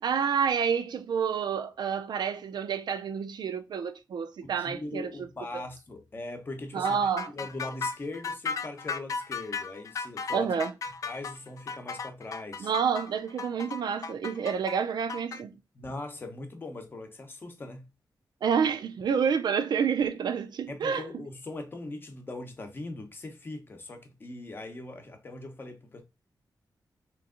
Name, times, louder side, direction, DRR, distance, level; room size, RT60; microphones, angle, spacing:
voice 1, 0.0-5.3 6.7-7.3 10.3-10.7 12.6-15.5 18.4-21.0, right 7 dB, 75° right, 0.5 m, -28 dB
voice 2, 4.4-10.5 11.0-12.7 15.7-17.9 20.7-26.0, left 2 dB, 30° left, 0.7 m, -40 dB
sound 1, 6.8-15.4, left 5 dB, 50° left, 0.3 m, -35 dB
3.4 x 3.1 x 3.7 m
wide cardioid pair, 180°, 7 cm